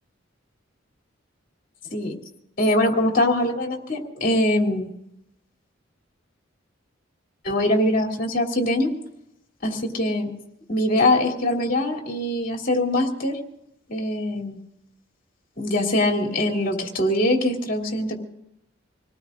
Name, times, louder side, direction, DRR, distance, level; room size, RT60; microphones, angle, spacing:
voice 1, 2.6-4.9 7.4-8.9 9.6-10.3 10.7-13.4 13.9-14.6 15.6-18.2, left 1 dB, 45° left, 1 dB, 2.9 m, -22 dB
27.0 x 19.0 x 2.6 m, 0.80 s
head